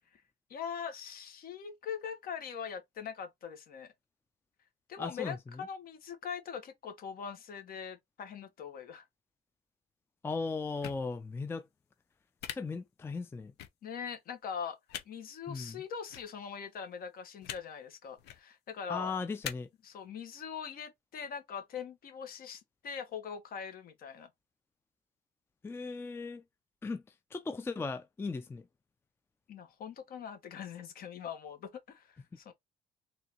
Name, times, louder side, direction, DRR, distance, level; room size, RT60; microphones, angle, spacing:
voice 1, 0.5-3.9 4.9-9.0 13.8-14.8 15.0-19.2 19.8-24.3 29.5-32.5, left 7 dB, 60° left, 1.3 m, -42 dB
voice 2, 5.0-5.7 10.2-11.7 12.5-13.5 15.5-15.8 18.9-19.7 25.6-26.4 26.8-27.0 27.3-28.6, left 4 dB, 15° left, 0.4 m, -37 dB
sound 1, 10.8-11.0 12.4-12.5 13.6-13.7 14.9-15.0 16.1-16.2 17.4-17.6 18.2-18.4 19.4-19.5, left 11 dB, 80° left, 0.8 m, -40 dB
3.8 x 2.7 x 2.9 m
cardioid pair, 110°, 17 cm